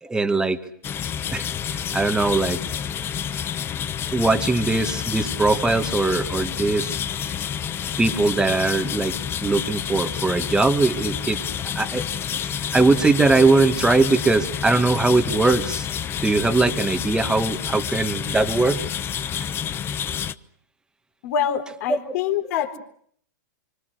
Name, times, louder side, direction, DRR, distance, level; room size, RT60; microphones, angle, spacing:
voice 1, 0.0-0.6 1.3-1.5 1.7-2.6 4.1-7.0 8.0-9.1 9.4-11.4 11.8-12.1 12.4-15.9 16.2-18.9 21.9-22.0, right 3 dB, 10° right, 6 dB, 2.0 m, -21 dB
sound 1, 0.8-20.3, left 8 dB, 25° left, 1.0 m, -29 dB
voice 2, 21.2-22.8, left 8 dB, 55° left, 4 dB, 4.2 m, -25 dB
27.5 x 25.0 x 6.6 m, 0.63 s
hypercardioid pair, 130°, 10 cm